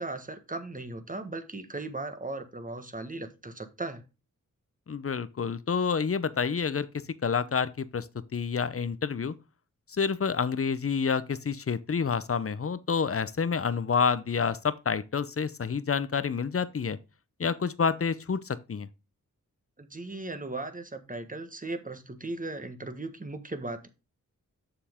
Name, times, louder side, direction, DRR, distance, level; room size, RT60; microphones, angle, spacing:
voice 1, 0.0-4.0 19.8-23.9, right 2 dB, 25° right, 1.5 m, -37 dB
voice 2, 4.9-6.9 7.2-8.1 8.3-9.3 9.9-17.0 17.4-18.9, left 6 dB, 45° left, 0.7 m, -28 dB
7.0 x 7.0 x 3.6 m
wide cardioid pair, 70°, 33 cm